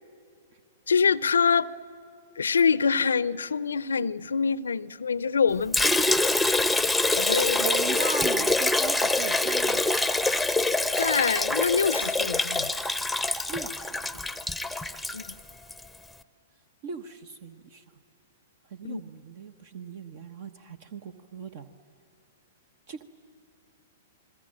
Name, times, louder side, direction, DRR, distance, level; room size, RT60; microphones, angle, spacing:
voice 1, 0.9-1.7 2.4-5.8 7.1-7.7 11.0-12.8 15.1-15.2 18.8-19.0, left 6 dB, 80° left, 20 dB, 0.5 m, -25 dB
Liquid, 5.7-15.8, left 2 dB, ahead, 0.8 m, -25 dB
voice 2, 7.6-9.8 13.5-14.2 16.8-17.8 18.7-21.7 22.9-23.0, right 5 dB, 50° right, 10 dB, 1.1 m, -38 dB
29.0 x 21.5 x 7.7 m, 2.6 s
hypercardioid pair, 110°, 0 cm